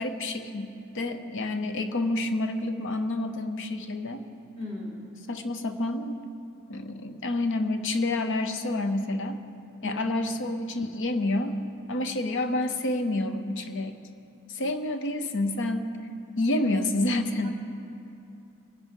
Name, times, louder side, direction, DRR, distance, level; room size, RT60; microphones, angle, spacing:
voice 1, 0.0-4.2 5.3-6.2 6.7-9.4 9.8-11.6 11.9-14.0 14.5-15.9 16.4-17.5, left 2 dB, 55° left, 8 dB, 0.8 m, -28 dB
voice 2, 4.6-5.1 9.8-10.0 17.4-17.5, left 2 dB, 30° left, -3 dB, 2.1 m, -37 dB
21.0 x 10.0 x 3.8 m, 2.7 s
head